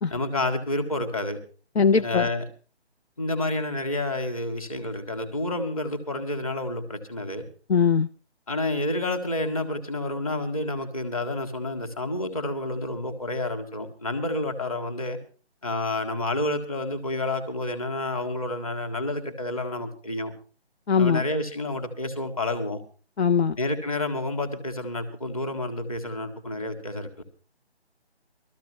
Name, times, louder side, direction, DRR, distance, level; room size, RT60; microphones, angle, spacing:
voice 1, 0.1-1.4 1.9-2.4 3.2-7.4 8.5-15.2 15.6-20.3 21.0-22.8 23.6-27.2, left 2 dB, 30° left, 6 dB, 1.8 m, -29 dB
voice 2, 1.8-2.3 7.7-8.1 20.9-21.2 23.2-23.6, left 6 dB, 70° left, 12 dB, 0.6 m, -20 dB
21.0 x 13.5 x 3.1 m, 0.37 s
hypercardioid pair, 175°, 33 cm